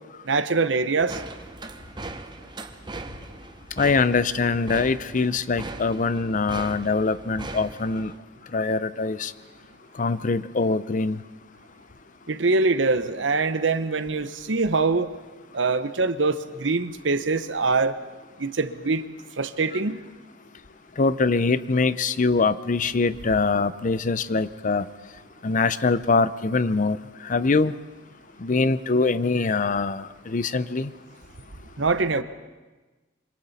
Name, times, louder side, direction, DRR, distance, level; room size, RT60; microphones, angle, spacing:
voice 1, 0.2-1.2 12.3-15.1 15.5-18.0 18.4-19.1 19.4-20.0 31.8-32.2, right 3 dB, 75° right, 11 dB, 1.0 m, -23 dB
sound 1, 1.1-8.2, right 2 dB, 25° right, 1.0 m, -39 dB
voice 2, 3.8-8.1 8.5-9.3 9.9-11.2 21.0-24.9 25.4-27.8 28.4-30.9, left 4 dB, 45° left, 15 dB, 0.6 m, -23 dB
26.0 x 25.0 x 4.2 m, 1.2 s
head